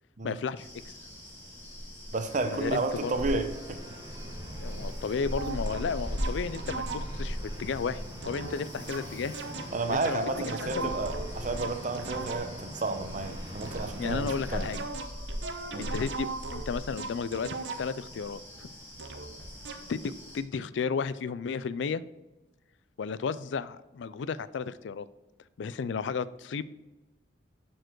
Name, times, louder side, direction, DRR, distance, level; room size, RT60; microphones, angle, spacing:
voice 1, 0.2-1.0 2.5-3.1 4.6-9.4 9.9-10.2 10.5-10.9 14.0-14.8 15.8-18.7 19.9-22.0 23.0-25.1 25.6-26.6, left 5 dB, 85° left, 16 dB, 0.4 m, -33 dB
sound 1, 0.6-20.4, equal, 15° left, 2.4 m, -40 dB
voice 2, 2.1-3.8 9.7-14.7 15.7-15.9, right 3 dB, 45° right, 8 dB, 0.8 m, -32 dB
sound 2, 2.3-14.9, right 1 dB, 25° right, 1.3 m, -44 dB
sound 3, 5.3-7.3 8.2-12.7 13.6-18.1 19.0-19.3 19.6-19.9, right 3 dB, 85° right, 0.8 m, -39 dB
11.0 x 4.6 x 4.6 m, 1.1 s
head